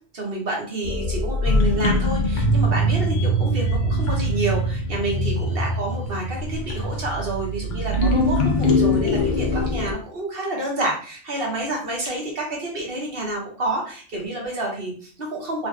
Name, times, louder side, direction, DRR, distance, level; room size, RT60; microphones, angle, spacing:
voice 1, 0.1-15.7, right 2 dB, 55° right, -2 dB, 1.0 m, -29 dB
sound 1, 0.8-9.9, equal, 60° left, 0.5 m, -22 dB
2.7 x 2.5 x 2.3 m, 0.42 s
omnidirectional pair, 1.3 m